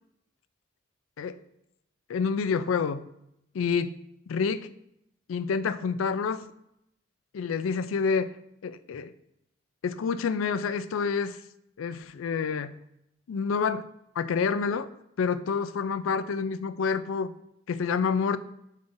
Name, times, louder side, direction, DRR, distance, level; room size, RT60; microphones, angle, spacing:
voice 1, 2.1-3.0 3.5-4.0 4.3-4.7 5.3-6.5 7.3-8.3 8.6-9.1 9.8-11.4 11.8-12.7 13.3-13.8 14.2-14.9 15.2-17.3 17.7-18.4, left 5 dB, 85° left, 13 dB, 0.4 m, -28 dB
8.2 x 5.3 x 2.6 m, 0.81 s
head